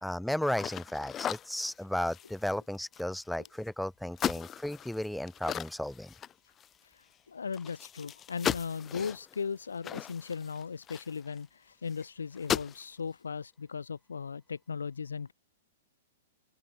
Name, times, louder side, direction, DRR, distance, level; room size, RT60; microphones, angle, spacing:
voice 1, 0.0-6.1, left 1 dB, ahead, 1.9 m, -34 dB
sound 1, 0.5-3.7 4.1-6.8 7.1-7.2 7.5-11.4 11.9-12.0 12.3-12.9, left 9 dB, 25° left, 0.5 m, -37 dB
voice 2, 6.9-15.3, left 5 dB, 90° left, 2.1 m, -37 dB
hypercardioid pair, 120°, 0 cm